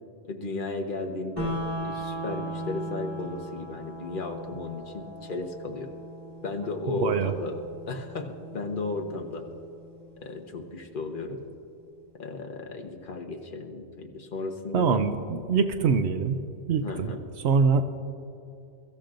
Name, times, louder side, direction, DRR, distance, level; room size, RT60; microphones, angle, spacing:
voice 1, 0.2-1.5 1.8-5.9 6.4-7.6 7.9-9.4 10.2-11.4 12.2-15.0 16.8-17.2, left 3 dB, 50° left, 4 dB, 1.2 m, -34 dB
sound 1, 1.4-11.4, right 1 dB, 55° right, 2.9 m, -39 dB
voice 2, 7.0-7.3 14.7-16.4 16.7-18.0, right 5 dB, 75° right, 9 dB, 0.9 m, -24 dB
23.0 x 14.0 x 2.6 m, 2.6 s
omnidirectional pair, 1.1 m